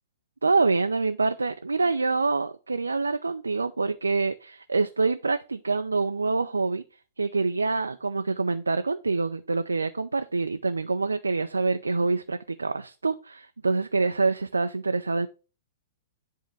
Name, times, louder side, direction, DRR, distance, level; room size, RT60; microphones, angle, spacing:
voice 1, 0.4-6.8 7.2-15.3, right 3 dB, 80° right, 0.5 m, -26 dB
10.5 x 3.7 x 6.0 m
figure-of-eight pair, 105°, 0 cm